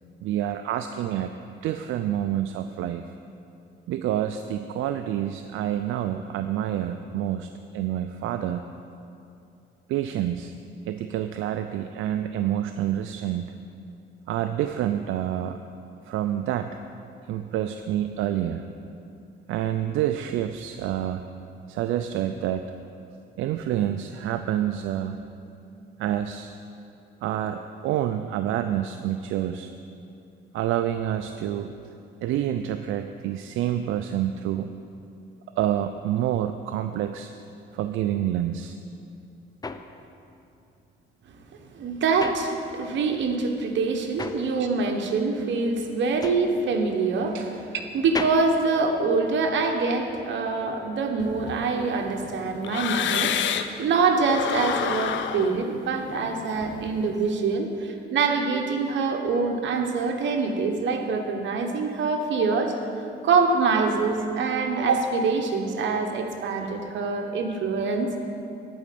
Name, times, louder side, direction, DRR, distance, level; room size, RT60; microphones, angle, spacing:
voice 1, 0.2-1.3 1.6-3.1 3.9-8.6 9.9-10.5 10.9-13.5 14.3-15.6 16.0-16.8 17.3-18.6 19.5-21.2 21.7-22.7 23.4-25.2 26.0-26.5 27.2-29.7 30.5-31.7 32.2-34.7 35.6-37.3 37.7-38.8 47.3-47.4, right 11 dB, 85° right, 8 dB, 0.4 m, -28 dB
sound 1, 38.9-43.2 43.4-49.7, left 3 dB, 20° left, 0.5 m, -38 dB
voice 2, 41.7-47.4 47.9-53.3 53.8-62.7 63.2-68.1, right 4 dB, 70° right, 3 dB, 1.2 m, -25 dB
sound 2, 51.2-53.8 54.2-57.2, left 9 dB, 70° left, 0.6 m, -30 dB
10.5 x 5.1 x 8.4 m, 2.7 s
cardioid pair, 90°, 20 cm